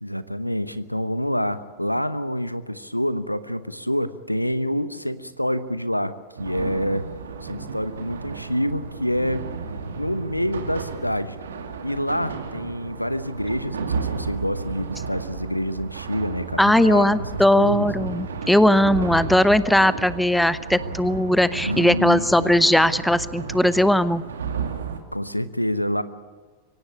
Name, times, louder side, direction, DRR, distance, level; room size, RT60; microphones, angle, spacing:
voice 1, 0.0-6.1 6.4-7.1 7.4-9.5 10.0-11.4 11.8-17.2 17.6-17.9 21.6-22.5 25.1-26.0, equal, 90° left, 14 dB, 1.0 m, -27 dB
sound 1, 6.4-25.0, right 5 dB, 65° right, 2.4 m, -33 dB
voice 2, 16.6-24.2, left 1 dB, 5° left, 16 dB, 0.7 m, -19 dB
24.0 x 17.5 x 8.7 m, 1.6 s
figure-of-eight pair, 90°, 0 cm